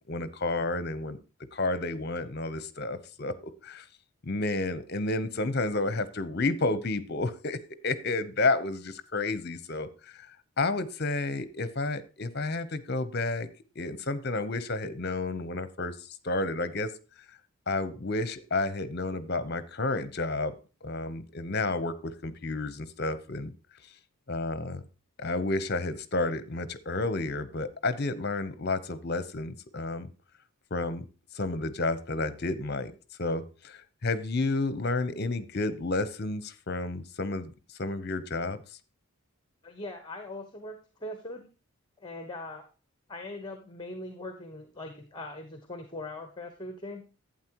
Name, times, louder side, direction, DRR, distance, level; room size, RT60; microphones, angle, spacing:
voice 1, 0.1-1.2 1.5-3.8 4.2-7.6 7.8-9.9 10.1-10.3 10.6-13.5 13.8-16.9 17.7-20.5 20.8-23.5 24.3-24.8 25.2-30.1 30.7-31.0 31.3-32.9 33.2-37.5 37.8-38.6, left 2 dB, 45° left, 14 dB, 0.8 m, -31 dB
voice 2, 39.6-41.5 42.0-42.6 43.1-47.0, left 2 dB, 20° left, 6 dB, 1.1 m, -41 dB
11.5 x 8.8 x 3.0 m, 0.34 s
head